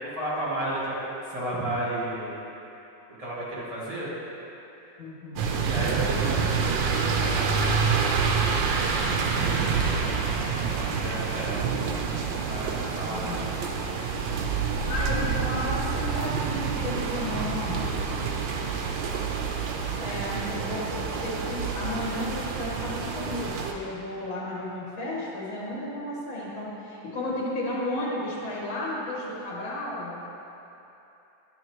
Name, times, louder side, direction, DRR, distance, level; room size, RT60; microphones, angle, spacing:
voice 1, 0.0-2.3 3.2-4.1 5.6-7.5 10.7-11.7 12.5-14.0 18.4-19.5, right 1 dB, 20° right, -9 dB, 1.4 m, -33 dB
voice 2, 5.0-5.5 9.2-9.7 13.0-13.5 14.9-18.1 20.0-30.2, left 1 dB, 85° left, -6 dB, 2.5 m, -33 dB
sound 1, 5.4-23.7, right 5 dB, 75° right, 1.3 m, -27 dB
10.5 x 6.9 x 3.0 m, 2.9 s
omnidirectional pair, 2.1 m